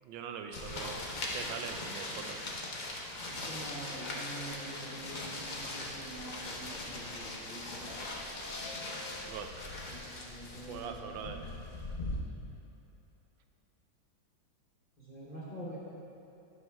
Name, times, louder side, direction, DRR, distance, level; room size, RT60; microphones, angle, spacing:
voice 1, 0.0-1.0 1.3-2.4 9.3-9.5 10.7-11.4, right 7 dB, 80° right, 5 dB, 1.4 m, -42 dB
sound 1, 0.5-12.2, left 2 dB, 70° left, 0.4 m, -40 dB
voice 2, 3.3-8.1 9.9-11.4 15.0-15.8, right 1 dB, 30° left, -7 dB, 0.8 m, -46 dB
sound 2, 5.1-10.1, left 2 dB, 50° right, 2.1 m, -54 dB
10.5 x 6.2 x 3.4 m, 2.9 s
omnidirectional pair, 2.2 m